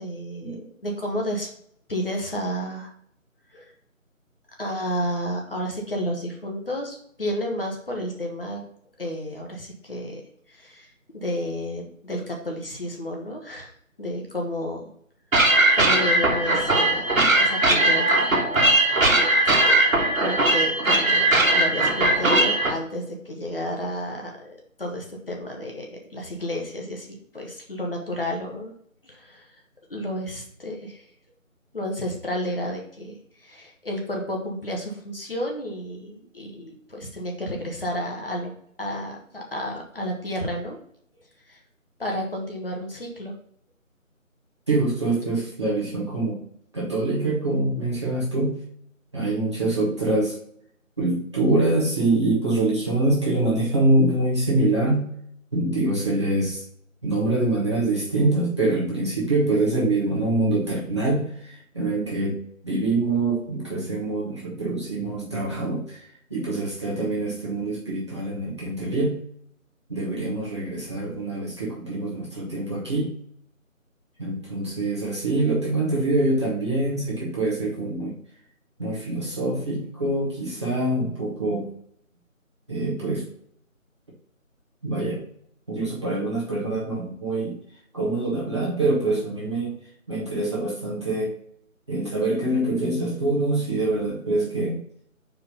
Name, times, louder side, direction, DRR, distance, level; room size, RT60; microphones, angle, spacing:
voice 1, 0.0-1.5 1.9-2.9 3.5-3.7 4.6-8.7 9.0-10.2 10.5-13.7 14.0-14.8 15.7-17.1 17.4-18.3 19.4-19.6 20.2-21.3 21.5-28.7 29.0-29.5 29.9-31.0 31.7-38.5 38.8-40.8 41.5-41.6 42.0-43.3, equal, 45° left, 0 dB, 1.1 m, -31 dB
sound 1, 15.3-22.7, right 2 dB, 70° right, 1.5 m, -19 dB
voice 2, 44.7-46.4 46.7-48.6 49.1-50.4 51.0-55.1 55.5-56.6 57.0-62.4 62.6-69.2 69.9-73.1 74.2-78.1 78.8-81.7 82.7-83.2 84.8-85.2 85.7-87.6 87.9-89.7 90.1-91.3 91.9-94.8, right 2 dB, 20° right, -7 dB, 1.2 m, -25 dB
4.7 x 3.7 x 5.5 m, 0.66 s
figure-of-eight pair, 170°, 41 cm